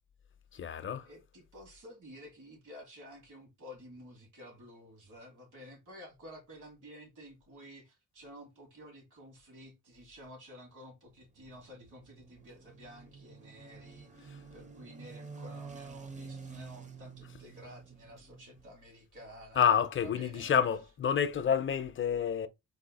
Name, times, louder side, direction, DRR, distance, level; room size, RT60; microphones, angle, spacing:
voice 1, 0.5-1.1 19.6-22.5, left 8 dB, 40° left, 0.5 m, -28 dB
voice 2, 1.0-19.7 20.0-20.5, equal, 75° right, 2.6 m, -52 dB
sound 1, 11.1-18.7, right 5 dB, 25° right, 0.6 m, -49 dB
4.1 x 2.7 x 4.0 m
wide cardioid pair, 130°, 32 cm